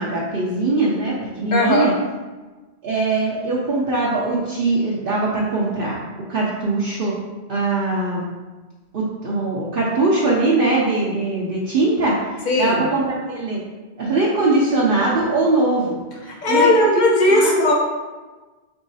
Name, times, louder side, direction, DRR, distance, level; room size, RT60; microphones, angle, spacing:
voice 1, 0.0-1.9 2.8-6.0 6.3-7.1 7.5-8.3 8.9-12.2 12.6-13.6 14.0-16.0 16.3-16.9 17.2-17.5, right 2 dB, 60° right, -6 dB, 0.8 m, -21 dB
voice 2, 1.5-1.9 12.5-12.9 16.4-17.7, left 2 dB, 45° left, -1 dB, 0.8 m, -17 dB
4.6 x 4.0 x 2.7 m, 1.3 s
omnidirectional pair, 1.1 m